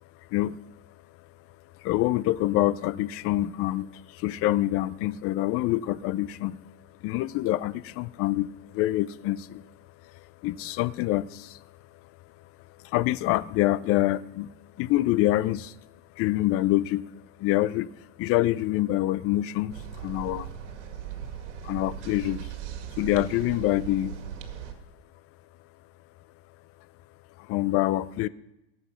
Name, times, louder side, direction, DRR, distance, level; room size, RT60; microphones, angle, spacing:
voice 1, 1.8-6.6 7.0-8.5 8.7-9.6 10.4-11.6 12.8-14.5 14.8-15.7 16.2-17.0 17.4-17.9 18.2-20.5 21.6-22.5 23.0-24.1 27.4-28.3, left 15 dB, 40° left, 19 dB, 0.6 m, -26 dB
sound 1, 19.7-24.7, right 9 dB, 90° right, 2.2 m, -38 dB
18.0 x 8.2 x 5.8 m, 0.89 s
supercardioid pair, 135°, 35 cm